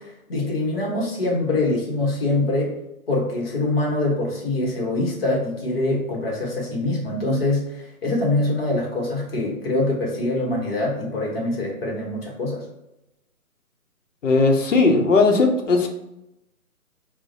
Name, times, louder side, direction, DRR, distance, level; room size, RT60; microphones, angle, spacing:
voice 1, 0.0-2.7 3.1-12.6, left 2 dB, 40° left, -2 dB, 1.1 m, -24 dB
voice 2, 14.2-15.9, left 3 dB, 60° left, 3 dB, 0.7 m, -17 dB
4.4 x 2.1 x 2.6 m, 0.89 s
figure-of-eight pair, 150°, 44 cm